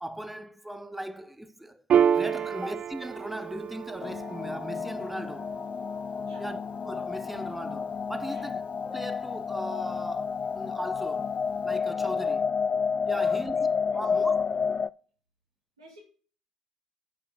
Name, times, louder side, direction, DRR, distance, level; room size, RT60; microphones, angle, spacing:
voice 1, 0.0-1.8 2.1-5.6 6.4-10.2 10.5-11.4 11.6-12.4 13.0-13.6 13.9-14.4, right 1 dB, 5° right, 0.8 m, -38 dB
Piano, 1.9-8.8, right 8 dB, 50° right, 0.5 m, -31 dB
sound 1, 4.0-14.9, left 6 dB, 40° left, 0.3 m, -30 dB
voice 2, 13.1-13.6 13.9-14.3 15.8-16.0, right 1 dB, 90° right, 2.6 m, -51 dB
8.4 x 5.4 x 5.0 m
figure-of-eight pair, 50°, 3 cm